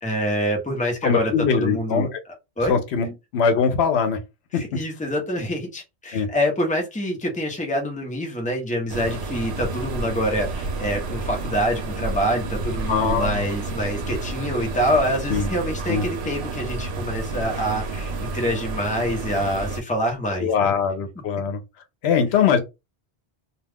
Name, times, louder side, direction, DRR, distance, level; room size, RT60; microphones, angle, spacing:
voice 1, 0.0-2.1 2.6-2.7 4.5-20.7, equal, 10° left, 0.7 m, -26 dB
voice 2, 1.0-2.2 2.7-4.2 4.5-4.6 6.1-6.3 12.9-13.5 15.3-15.5 15.9-16.0 20.4-21.6 22.0-22.6, left 6 dB, 80° left, 0.9 m, -21 dB
sound 1, 8.9-19.8, right 3 dB, 85° right, 0.9 m, -30 dB
2.4 x 2.3 x 3.4 m
omnidirectional pair, 1.1 m